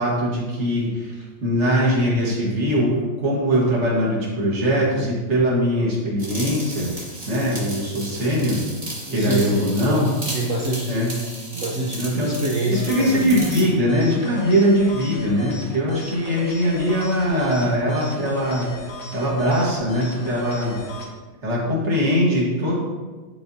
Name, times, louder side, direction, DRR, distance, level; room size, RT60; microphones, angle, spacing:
voice 1, 0.0-6.9 7.3-8.6 9.1-10.1 10.9-11.1 11.9-12.3 12.7-18.7 19.1-20.8 21.4-22.8, equal, 40° right, -4 dB, 1.6 m, -21 dB
sound 1, 6.2-13.7, right 1 dB, 20° right, 1.1 m, -35 dB
voice 2, 9.1-10.0 10.3-10.9 11.5-13.4, right 1 dB, 70° right, -3 dB, 0.7 m, -26 dB
sound 2, 12.7-21.1, left 3 dB, 90° left, 1.8 m, -36 dB
10.0 x 3.9 x 2.7 m, 1.3 s
omnidirectional pair, 2.2 m